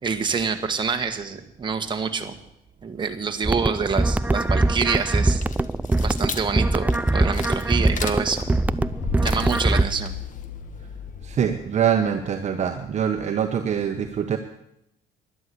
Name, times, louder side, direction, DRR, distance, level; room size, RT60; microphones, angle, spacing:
voice 1, 0.0-2.3 2.8-5.4 6.0-8.5 9.1-10.1, right 5 dB, 25° right, 5 dB, 1.6 m, -26 dB
sound 1, 3.4-9.8, right 2 dB, 10° right, 0.5 m, -22 dB
sound 2, 5.2-11.7, left 5 dB, 50° left, 1.4 m, -35 dB
voice 2, 11.2-14.4, right 8 dB, 45° right, 5 dB, 1.2 m, -24 dB
12.5 x 11.5 x 8.6 m, 0.81 s
cardioid pair, 110°, 17 cm